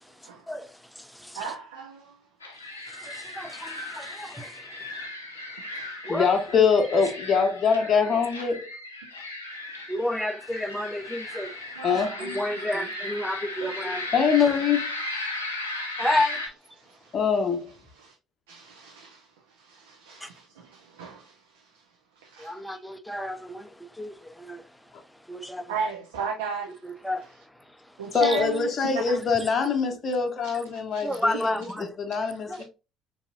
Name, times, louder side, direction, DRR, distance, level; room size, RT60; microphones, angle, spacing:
voice 1, 0.0-1.5 2.9-5.0 6.0-6.4 8.1-8.2 9.9-11.8 12.2-14.1 16.0-16.5 20.2-20.3 22.4-25.7 26.8-28.4 28.8-28.9 29.4-29.5 31.0-32.0 32.5-32.6, left 1 dB, 5° left, 0.5 m, -32 dB
voice 2, 1.3-2.2 4.9-6.1 9.6-9.9 11.8-12.4 13.6-13.7 16.8-17.2 18.0-18.1 18.5-21.8 22.2-22.6 25.7-26.8 28.0-29.0 30.4-30.6 30.9-31.1 32.2-32.6, right 5 dB, 75° right, 0.5 m, -37 dB
sound 1, 2.4-16.5, left 2 dB, 85° left, 0.6 m, -36 dB
voice 3, 6.1-8.7 11.8-12.1 14.1-14.9 17.1-17.7 28.1-31.5 31.8-32.6, left 6 dB, 40° left, 0.7 m, -23 dB
4.6 x 2.7 x 2.6 m
figure-of-eight pair, 50°, 0 cm